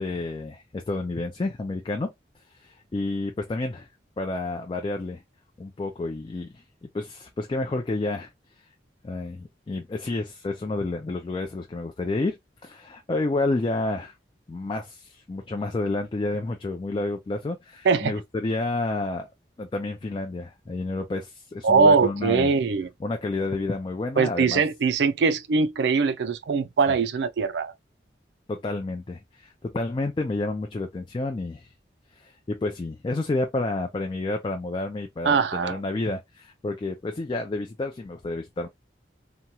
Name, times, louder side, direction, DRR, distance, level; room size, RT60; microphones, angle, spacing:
voice 1, 0.0-2.1 2.5-3.9 4.2-5.2 5.6-8.3 9.0-12.4 12.6-14.1 14.5-19.3 19.6-22.5 23.0-24.6 28.5-31.7 32.1-38.7, left 2 dB, 25° left, 0.3 m, -30 dB
voice 2, 21.6-22.9 24.2-27.7 35.2-35.8, right 5 dB, 80° right, 0.4 m, -22 dB
2.9 x 2.3 x 2.7 m
head